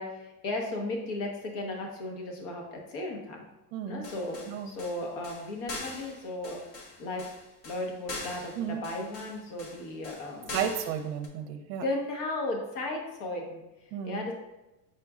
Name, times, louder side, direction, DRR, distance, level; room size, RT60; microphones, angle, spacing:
voice 1, 0.0-3.4 3.9-4.4 4.7-6.6 7.0-7.2 7.6-10.6 11.8-13.6 14.0-14.3, left 2 dB, 65° left, 1 dB, 1.3 m, -35 dB
voice 2, 3.7-4.0 4.5-4.7 8.6-8.8 10.5-11.8 13.9-14.3, right 8 dB, 65° right, 7 dB, 0.6 m, -33 dB
sound 1, 4.0-11.3, left 2 dB, 40° left, 0.8 m, -42 dB
5.1 x 4.4 x 2.4 m, 0.99 s
supercardioid pair, 145°, 50 cm